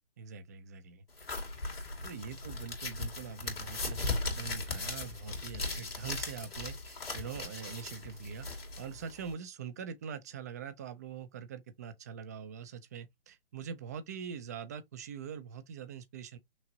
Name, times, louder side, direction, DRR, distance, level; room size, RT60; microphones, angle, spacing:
voice 1, 0.2-1.0 2.0-8.5 8.8-16.4, right 7 dB, 20° right, 0.3 m, -43 dB
sound 1, 1.2-9.3, left 3 dB, 80° left, 2.3 m, -38 dB
5.9 x 2.6 x 2.7 m
figure-of-eight pair, 125°, 29 cm